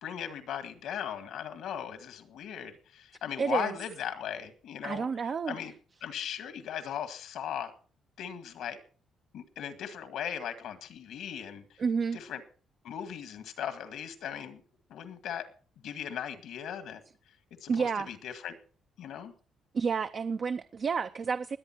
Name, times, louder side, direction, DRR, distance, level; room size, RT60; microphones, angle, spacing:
voice 1, 0.0-5.1 5.5-5.7 6.0-7.7 8.2-8.8 9.3-11.6 12.1-12.4 12.8-14.6 14.9-15.5 15.8-17.0 17.6-18.6 19.0-19.3, left 9 dB, 80° left, 1.9 m, -38 dB
voice 2, 3.4-3.8 4.8-5.6 11.8-12.2 17.7-18.1 19.7-21.6, right 5 dB, 50° right, 0.5 m, -30 dB
21.0 x 8.4 x 4.5 m
cardioid pair, 90°, 0 cm